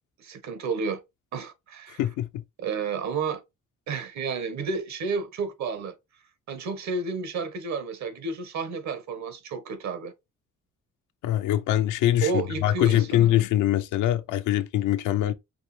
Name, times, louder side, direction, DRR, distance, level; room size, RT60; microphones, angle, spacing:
voice 1, 0.2-1.0 1.3-2.0 2.6-3.4 3.9-6.0 6.5-10.1 12.2-13.3, right 4 dB, 65° right, 1.3 m, -31 dB
voice 2, 2.0-2.4 11.2-15.3, left 12 dB, 85° left, 0.6 m, -23 dB
5.8 x 2.7 x 3.2 m
cardioid pair, 90°, 30 cm